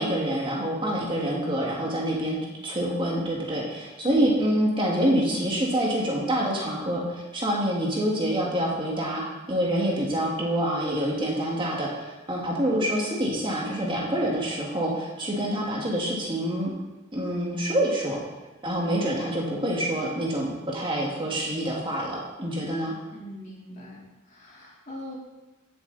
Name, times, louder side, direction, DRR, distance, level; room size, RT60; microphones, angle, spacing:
voice 1, 0.0-2.4 2.6-9.2 9.5-16.7 17.1-18.2 18.6-22.9, right 1 dB, 25° right, -3 dB, 1.9 m, -26 dB
voice 2, 23.1-25.1, equal, 40° left, -6 dB, 3.6 m, -39 dB
16.5 x 7.2 x 4.1 m, 1.1 s
head